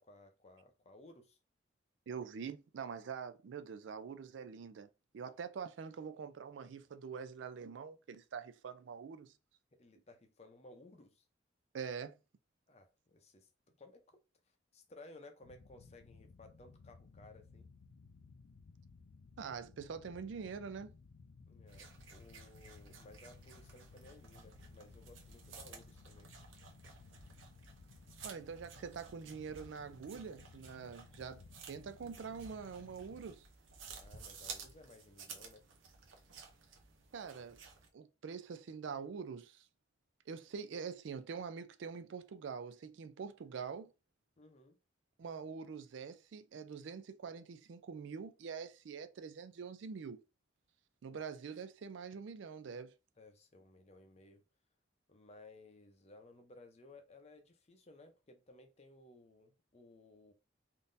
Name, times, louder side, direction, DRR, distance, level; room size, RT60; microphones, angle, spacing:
voice 1, 0.0-1.4 9.8-11.2 12.7-13.5 13.8-14.2 14.7-17.7 21.5-26.3 33.9-35.7 44.4-44.8 51.1-51.2 53.2-54.4 55.1-60.3, left 2 dB, 35° left, 0.6 m, -59 dB
voice 2, 2.1-4.9 5.1-9.3 11.7-12.2 19.4-20.9 28.2-33.5 37.1-37.6 37.9-39.7 40.3-43.9 45.2-50.2 51.0-52.9, right 6 dB, 70° right, 0.4 m, -45 dB
sound 1, 15.4-33.3, left 4 dB, 75° left, 0.4 m, -59 dB
sound 2, 21.7-37.9, right 5 dB, 90° right, 0.7 m, -54 dB
3.6 x 2.7 x 2.5 m
head